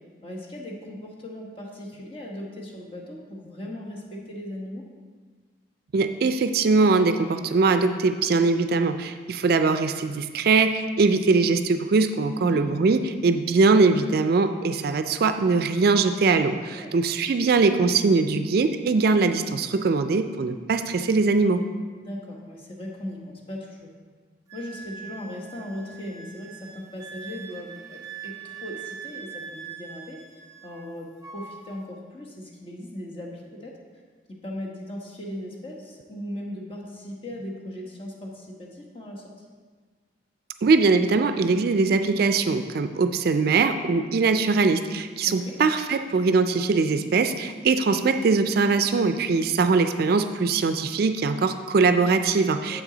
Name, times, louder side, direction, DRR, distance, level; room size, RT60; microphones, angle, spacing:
voice 1, 0.2-4.8 12.4-12.7 16.7-16.9 21.9-23.9 24.5-30.2 30.6-33.8 34.4-39.2 45.3-45.6 52.7-52.8, left 1 dB, 30° left, -2 dB, 1.2 m, -38 dB
voice 2, 5.9-21.6 40.6-52.8, right 4 dB, 60° right, 9 dB, 0.4 m, -21 dB
Wind instrument woodwind instrument, 24.5-30.9 31.2-31.8, right 6 dB, 20° right, 0.6 m, -42 dB
7.5 x 6.1 x 3.8 m, 1.5 s
head